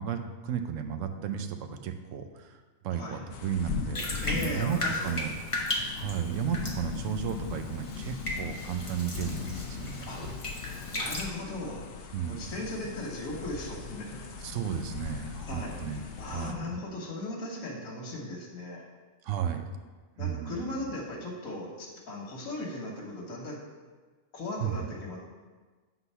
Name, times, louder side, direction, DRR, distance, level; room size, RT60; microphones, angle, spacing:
voice 1, 0.0-5.3 5.9-9.4 9.7-10.3 12.1-12.6 14.4-16.7 19.2-19.7 20.2-20.9 24.6-24.9, right 8 dB, 70° right, 7 dB, 1.0 m, -34 dB
sound 1, 3.3-16.5, left 6 dB, 65° left, 0.8 m, -39 dB
Bathtub (filling or washing), 3.9-11.2, left 1 dB, 25° left, 0.9 m, -36 dB
voice 2, 4.2-5.3 10.0-10.3 10.9-11.9 12.2-14.3 15.4-18.8 20.2-23.7 24.3-25.2, left 2 dB, 85° left, -2 dB, 1.6 m, -38 dB
8.2 x 3.9 x 5.4 m, 1.4 s
omnidirectional pair, 1.4 m